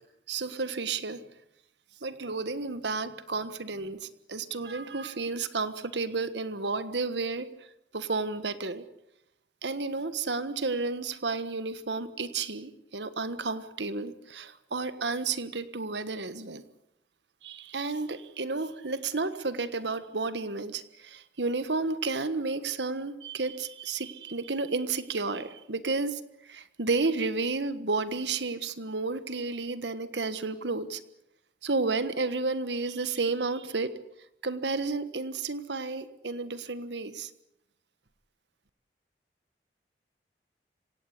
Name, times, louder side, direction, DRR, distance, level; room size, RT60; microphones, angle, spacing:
voice 1, 0.3-1.2 2.0-7.5 7.9-8.8 9.6-16.7 17.4-31.0 31.6-33.9 34.4-37.3, right 3 dB, 80° right, 13 dB, 1.5 m, -32 dB
25.5 x 17.5 x 8.3 m, 0.80 s
head